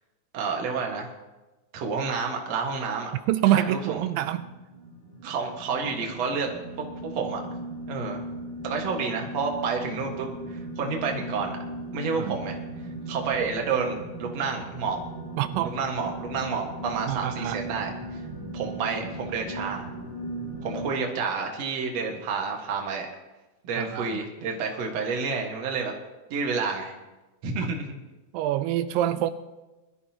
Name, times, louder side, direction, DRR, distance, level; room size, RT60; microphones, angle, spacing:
voice 1, 0.3-1.1 1.7-3.1 3.5-4.0 5.2-6.5 7.0-7.4 7.9-8.2 8.6-11.6 11.9-12.6 13.1-15.0 15.6-17.9 18.5-19.9 20.6-23.1 23.6-25.9 26.3-27.0 27.4-27.9, right 5 dB, 55° right, 1 dB, 2.5 m, -29 dB
voice 2, 3.3-4.5 12.2-12.3 15.4-15.7 17.1-17.6 23.8-24.2 28.3-29.3, right 13 dB, 90° right, 11 dB, 2.3 m, -25 dB
sound 1, 4.2-20.9, right 1 dB, 50° left, 4.5 m, -38 dB
22.0 x 12.5 x 2.9 m, 1.1 s
omnidirectional pair, 4.0 m